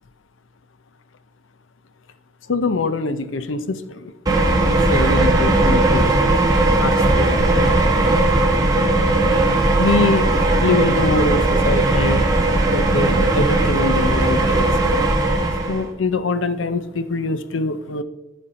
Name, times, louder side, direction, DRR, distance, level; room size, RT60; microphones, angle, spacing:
voice 1, 2.5-4.1 4.7-6.1 6.8-7.7 9.3-9.5 9.8-10.4 10.6-12.2 12.7-14.7 15.7-18.0, left 3 dB, 85° left, 12 dB, 0.7 m, -24 dB
sound 1, 4.3-15.9, right 2 dB, 20° right, 1.4 m, -17 dB
12.5 x 5.3 x 4.2 m, 0.93 s
head